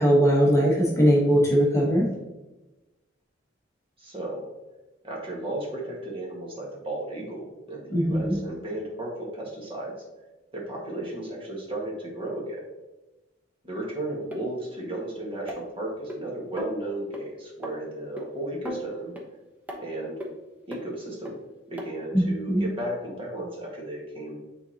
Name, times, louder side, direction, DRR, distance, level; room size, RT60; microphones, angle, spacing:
voice 1, 0.0-2.1 7.9-8.4 22.1-22.2 22.5-22.7, equal, 15° left, -4 dB, 1.2 m, -20 dB
voice 2, 4.0-4.4 5.0-9.9 10.5-12.6 13.6-19.2 19.8-20.2 20.7-21.3 21.7-24.4, right 1 dB, 30° right, -3 dB, 1.6 m, -34 dB
sound 1, 14.3-14.4 15.5-16.2 16.6-16.8 17.1-17.2 17.6-17.7 18.2-18.3 18.6-19.3 19.7-19.8 20.2-20.3 20.7-20.8 21.2-21.3 21.8-21.9 22.5-22.6, equal, 10° right, 1.0 m, -36 dB
9.1 x 4.0 x 2.9 m, 1.1 s
head